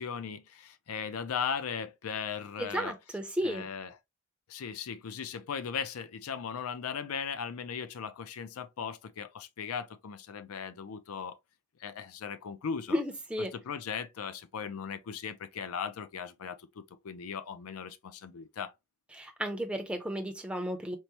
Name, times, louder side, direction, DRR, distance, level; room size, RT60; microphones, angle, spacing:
voice 1, 0.0-3.0 3.4-3.9 4.5-11.4 11.8-13.0 13.5-18.7, left 6 dB, 80° left, 0.4 m, -38 dB
voice 2, 2.6-3.7 12.9-13.5 19.1-21.0, equal, 5° right, 0.5 m, -33 dB
4.6 x 2.0 x 2.8 m
head